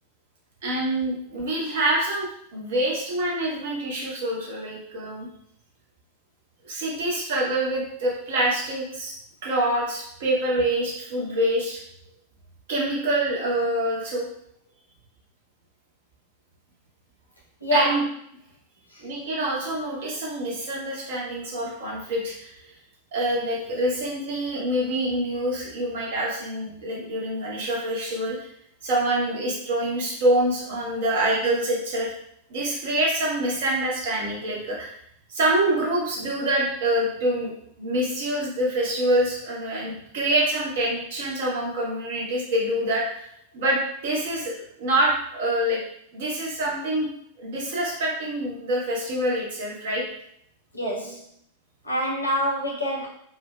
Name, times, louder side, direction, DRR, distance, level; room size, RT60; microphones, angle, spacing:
voice 1, 0.6-5.3 6.7-9.1 9.4-11.8 12.7-14.3 17.7-18.0 19.0-22.5 23.1-28.4 28.8-32.1 32.5-34.9 35.3-37.5 37.8-43.3 43.5-45.8 46.1-47.1 47.4-50.0, right 1 dB, 55° right, -3 dB, 0.8 m, -26 dB
voice 2, 17.6-18.0 18.9-19.1 50.7-51.2 51.8-53.1, equal, 85° left, -3 dB, 0.7 m, -25 dB
2.6 x 2.2 x 2.2 m, 0.69 s
figure-of-eight pair, 90°, 0 cm